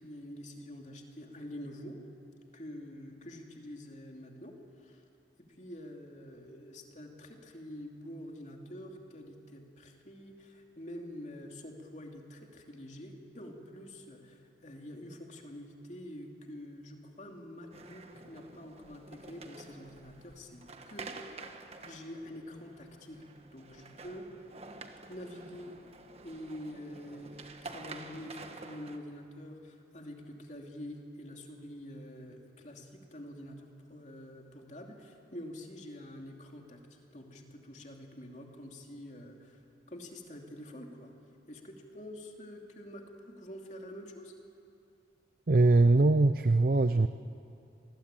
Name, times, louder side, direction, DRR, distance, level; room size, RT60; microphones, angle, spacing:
voice 1, 0.0-2.0 2.5-5.0 5.6-20.6 20.9-21.1 21.9-23.2 23.5-24.3 25.1-25.8 26.2-41.1 41.5-44.3, left 1 dB, 40° left, 2 dB, 2.8 m, -46 dB
sound 1, 17.7-29.0, right 3 dB, 35° right, 1.4 m, -49 dB
voice 2, 45.5-47.1, right 2 dB, 50° right, 11 dB, 0.5 m, -22 dB
26.0 x 20.0 x 9.0 m, 2.6 s
head